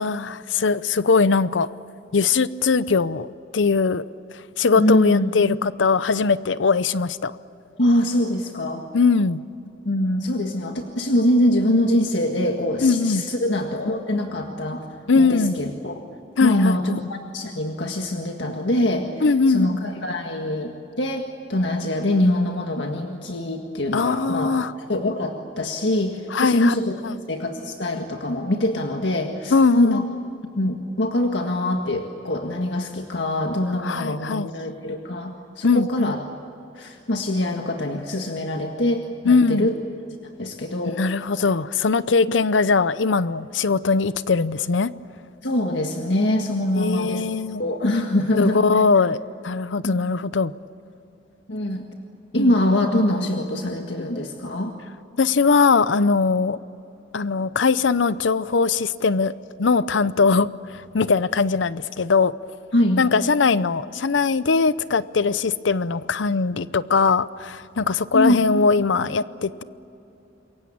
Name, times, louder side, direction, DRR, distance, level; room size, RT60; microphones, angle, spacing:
voice 1, 0.0-1.7 2.1-4.1 4.6-7.4 8.9-9.4 12.8-13.2 15.1-15.6 16.4-17.0 19.2-19.8 23.9-24.7 26.3-26.7 27.0-27.2 29.5-30.0 33.8-34.5 35.6-36.1 39.2-39.7 41.0-44.9 46.7-47.6 48.4-50.5 52.4-52.5 55.2-56.6 57.1-59.3 59.6-62.3 63.0-69.6, left 4 dB, 90° left, 16 dB, 0.7 m, -20 dB
voice 2, 4.8-5.3 7.8-8.8 9.9-14.8 15.1-15.9 16.4-24.5 24.9-27.0 27.3-30.0 30.6-36.2 36.8-39.8 40.4-41.0 45.4-47.2 47.6-48.6 49.8-50.0 51.5-51.9 52.3-54.7 62.7-63.0 68.1-68.4, left 1 dB, 70° left, 3 dB, 1.8 m, -23 dB
27.5 x 22.5 x 8.6 m, 2.8 s
head